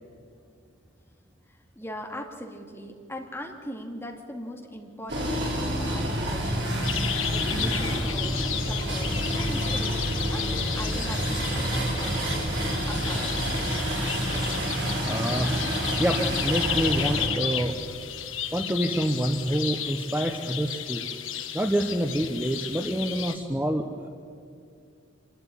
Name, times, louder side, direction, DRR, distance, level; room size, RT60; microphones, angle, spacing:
voice 1, 1.5-6.7 7.3-8.4 8.6-13.4, equal, 10° left, 1 dB, 2.3 m, -40 dB
sound 1, 5.1-17.3, equal, 55° right, 4.6 m, -28 dB
sound 2, 6.8-23.4, left 10 dB, 80° left, 1.3 m, -33 dB
voice 2, 15.0-15.5 16.0-17.8 18.5-21.0 21.5-24.1, right 1 dB, 10° right, 4 dB, 0.9 m, -27 dB
27.0 x 12.5 x 9.9 m, 2.4 s
head